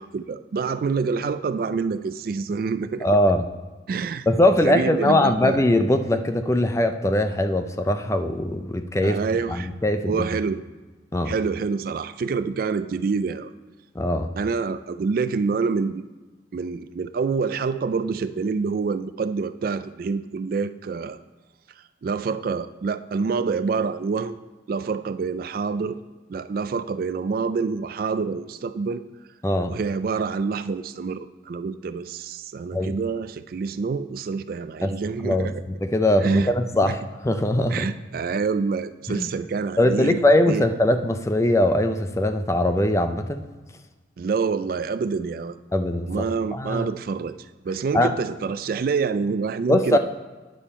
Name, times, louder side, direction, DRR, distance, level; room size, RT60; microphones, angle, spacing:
voice 1, 0.0-3.1 3.9-4.3 4.6-5.6 9.0-9.7 10.1-10.6 11.3-13.5 14.4-16.0 16.5-21.2 22.0-24.4 24.7-26.0 26.3-29.0 29.7-35.6 36.2-36.5 36.8-37.0 37.7-40.2 40.5-40.7 44.2-45.6 46.1-47.3 47.6-50.0, right 5 dB, 50° right, 13 dB, 0.3 m, -27 dB
voice 2, 3.0-3.4 4.3-9.2 9.5-10.3 11.1-11.3 13.9-14.3 29.4-29.7 32.7-33.0 34.8-34.9 35.2-37.9 39.1-39.3 39.8-43.5 45.7-46.3 46.5-46.9 47.9-48.1 49.7-50.0, left 1 dB, 15° left, 8 dB, 0.4 m, -21 dB
9.2 x 6.9 x 4.3 m, 1.2 s
head